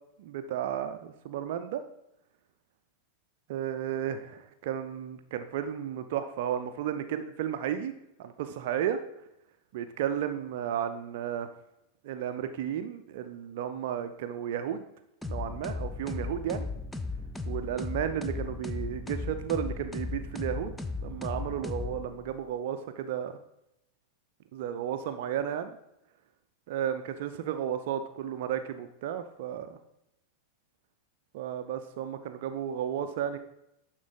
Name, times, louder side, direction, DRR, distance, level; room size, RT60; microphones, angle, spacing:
voice 1, 0.2-1.8 3.5-7.9 8.2-9.0 9.7-11.5 12.0-14.9 15.3-16.7 17.4-20.7 21.0-23.3 24.5-25.8 26.7-29.8 31.3-33.4, right 9 dB, 50° right, 9 dB, 0.5 m, -33 dB
sound 1, 15.2-22.4, left 3 dB, 5° left, 0.5 m, -36 dB
11.0 x 3.9 x 4.0 m, 0.84 s
figure-of-eight pair, 90°, 0 cm